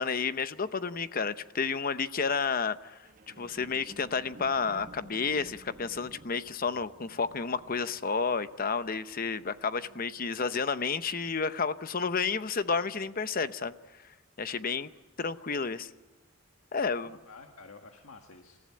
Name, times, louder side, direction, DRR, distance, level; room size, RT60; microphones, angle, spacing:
voice 1, 0.0-13.7 14.4-14.9 15.2-15.9 16.7-17.2, left 5 dB, 45° left, 13 dB, 0.8 m, -31 dB
sound 1, 3.0-10.5 11.0-11.1, right 2 dB, 40° right, 1.1 m, -54 dB
voice 2, 16.9-18.6, left 3 dB, 80° left, 3 dB, 1.8 m, -52 dB
28.0 x 15.0 x 9.7 m, 1.2 s
head